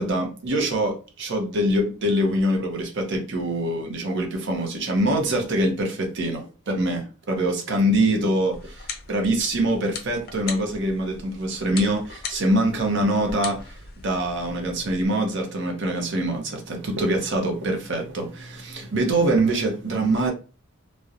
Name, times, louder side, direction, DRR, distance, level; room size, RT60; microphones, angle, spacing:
voice 1, 0.0-13.8 14.0-20.3, right 1 dB, 55° right, 0.6 m, -24 dB
sound 1, 8.5-15.1, left 4 dB, 45° left, 0.4 m, -39 dB
2.8 x 2.1 x 2.4 m
head